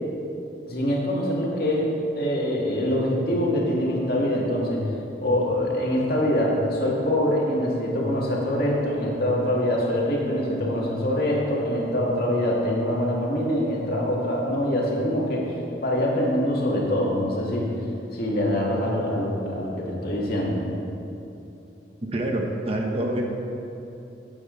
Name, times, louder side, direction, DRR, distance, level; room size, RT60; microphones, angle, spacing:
voice 1, 0.7-4.9 5.2-17.7 18.1-20.6, left 1 dB, 50° left, -3 dB, 2.3 m, -24 dB
voice 2, 22.1-23.2, right 1 dB, 30° right, 1 dB, 1.1 m, -26 dB
17.0 x 8.7 x 4.0 m, 2.9 s
head